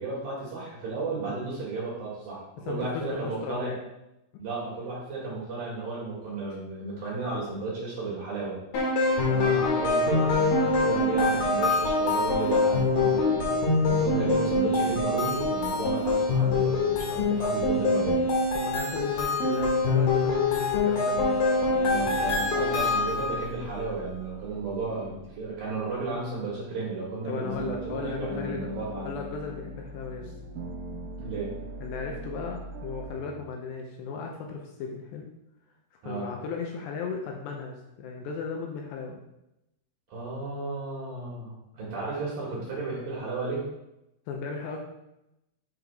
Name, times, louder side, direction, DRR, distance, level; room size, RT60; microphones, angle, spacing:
voice 1, 0.0-3.7 4.4-8.6 9.3-13.5 13.9-18.2 21.9-29.1 31.2-31.5 36.0-36.3 40.1-43.6, right 3 dB, 60° right, -5 dB, 2.8 m, -33 dB
voice 2, 2.6-3.8 18.5-21.2 27.3-28.7 29.0-30.3 31.8-35.3 35.9-39.2 44.3-44.8, left 5 dB, 80° left, 1 dB, 2.5 m, -36 dB
sound 1, 8.7-23.4, left 3 dB, 60° left, 2.7 m, -24 dB
sound 2, 21.7-26.9 27.2-33.5, right 1 dB, 75° right, 3.1 m, -40 dB
8.0 x 5.3 x 3.4 m, 0.89 s
omnidirectional pair, 5.6 m